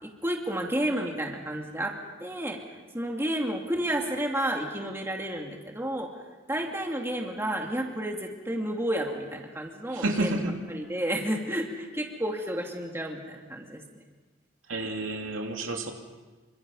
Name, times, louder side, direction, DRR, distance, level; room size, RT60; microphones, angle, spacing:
voice 1, 0.0-1.9 2.2-6.1 6.5-10.4 10.7-13.8, right 1 dB, 10° right, 1 dB, 2.5 m, -31 dB
voice 2, 9.9-10.6 14.7-15.9, right 2 dB, 80° right, 2 dB, 2.8 m, -30 dB
28.0 x 25.5 x 5.5 m, 1.3 s
head